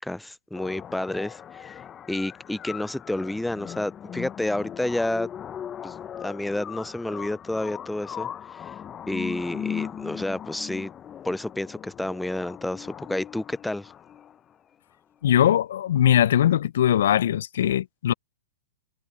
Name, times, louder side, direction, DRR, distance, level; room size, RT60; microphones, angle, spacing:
voice 1, 0.0-1.8 2.1-5.3 5.8-8.7 9.1-10.9 11.2-13.9, left 1 dB, 5° left, 0.5 m, -30 dB
sound 1, 0.5-14.5, left 9 dB, 25° left, 0.8 m, -39 dB
voice 2, 15.2-18.1, left 10 dB, 65° left, 0.6 m, -21 dB
hypercardioid pair, 115°, 0 cm